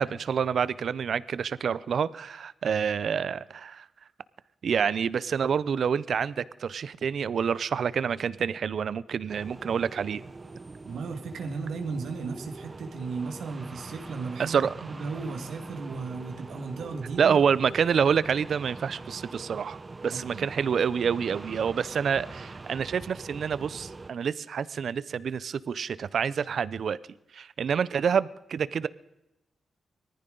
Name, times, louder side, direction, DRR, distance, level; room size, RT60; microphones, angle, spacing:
voice 1, 0.0-3.9 4.6-10.2 14.4-14.7 17.2-27.0 27.3-28.9, right 7 dB, 70° right, 18 dB, 0.5 m, -27 dB
sound 1, 9.3-24.1, right 3 dB, 30° right, 0.7 m, -43 dB
voice 2, 10.8-17.5 20.1-20.5, right 4 dB, 85° right, 5 dB, 1.8 m, -35 dB
19.0 x 14.0 x 3.8 m, 0.90 s
cardioid pair, 90°, 0 cm